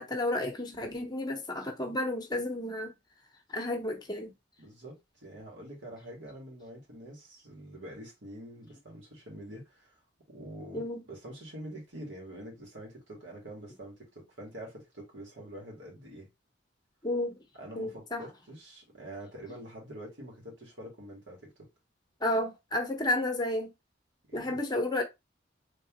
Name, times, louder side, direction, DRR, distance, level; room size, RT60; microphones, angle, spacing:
voice 1, 0.0-2.9 3.5-4.3 10.7-11.0 17.0-17.4 17.7-18.2 22.2-23.7 24.3-25.0, left 1 dB, 20° left, 0.9 m, -31 dB
voice 2, 4.6-10.0 10.3-16.3 17.5-21.7 24.3-24.6, right 1 dB, 85° right, 1.7 m, -46 dB
3.7 x 2.9 x 3.0 m
head